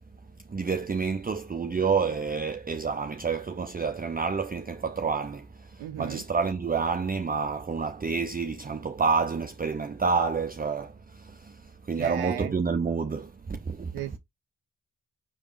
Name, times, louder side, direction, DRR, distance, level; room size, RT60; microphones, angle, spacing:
voice 1, 0.5-11.6 11.9-13.9, right 5 dB, 25° right, 0.6 m, -29 dB
voice 2, 5.8-6.2 11.9-12.5 13.9-14.2, right 13 dB, 85° right, 0.5 m, -35 dB
6.0 x 3.5 x 2.5 m
supercardioid pair, 40°, 38 cm